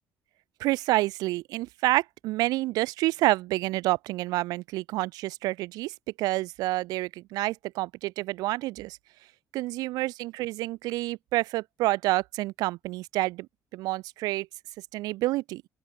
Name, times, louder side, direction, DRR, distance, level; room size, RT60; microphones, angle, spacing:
voice 1, 0.6-9.0 9.5-13.5 13.7-14.5 14.9-15.6, right 19 dB, 85° right, 2.6 m, -28 dB
open air
cardioid pair, 90°, 6 cm